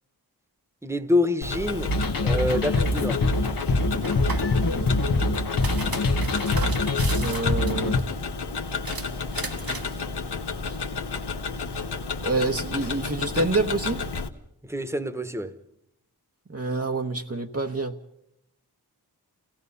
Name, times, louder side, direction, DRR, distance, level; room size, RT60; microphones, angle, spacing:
voice 1, 0.8-1.9 2.2-3.2 14.6-15.6, left 1 dB, 5° right, 1.4 m, -26 dB
Tick-tock, 1.4-14.3, left 4 dB, 85° left, 1.1 m, -32 dB
sound 1, 1.9-8.0, left 2 dB, 60° left, 1.2 m, -24 dB
sound 2, 4.0-4.5 5.4-8.0 8.8-10.0, right 3 dB, 60° right, 1.6 m, -36 dB
voice 2, 4.5-5.4 7.2-8.0 10.7-10.8 12.2-14.0 16.5-18.0, right 2 dB, 40° right, 1.2 m, -28 dB
28.5 x 16.5 x 5.5 m
cardioid pair, 50°, 39 cm